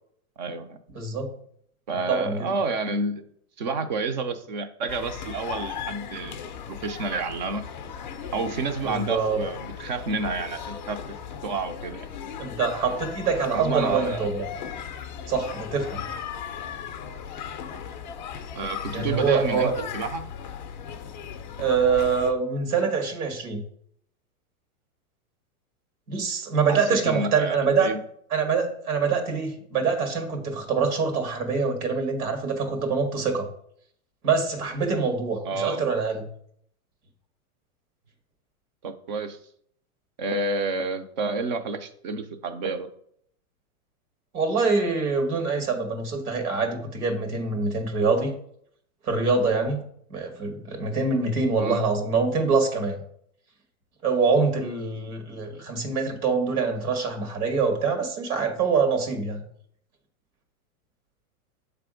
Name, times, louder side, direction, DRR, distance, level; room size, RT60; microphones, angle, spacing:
voice 1, 0.4-0.8 1.9-3.2 3.6-6.4 6.7-7.6 8.3-11.0 11.4-12.1 13.5-14.3 18.6-20.2 26.7-28.0 35.4-35.8 38.8-39.4 40.2-42.9 51.5-51.8, right 3 dB, 35° right, 9 dB, 0.5 m, -29 dB
voice 2, 0.9-1.3 2.1-2.5 8.8-9.4 12.4-14.5 15.3-16.1 18.9-19.7 21.6-23.6 26.1-27.9 28.3-33.5 34.2-36.3 44.3-48.3 49.0-49.8 50.1-53.0 54.0-59.5, right 4 dB, 80° right, 4 dB, 1.9 m, -25 dB
sound 1, 4.9-22.3, left 8 dB, 35° left, 0.4 m, -37 dB
7.3 x 3.4 x 4.9 m, 0.66 s
supercardioid pair, 165°, 44 cm